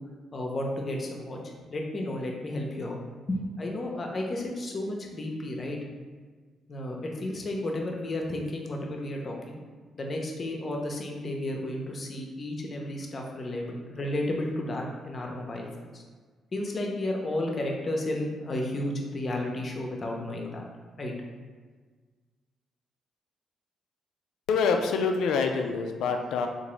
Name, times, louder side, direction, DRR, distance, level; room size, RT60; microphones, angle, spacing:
voice 1, 0.3-1.4 1.7-3.0 3.3-5.8 6.7-9.6 9.9-15.7 15.9-16.0 16.5-20.6 21.0-21.1, left 1 dB, 45° left, 0 dB, 0.7 m, -32 dB
voice 2, 24.5-26.5, left 5 dB, 70° left, 4 dB, 0.3 m, -26 dB
3.7 x 2.6 x 3.1 m, 1.5 s
hypercardioid pair, 40°, 0 cm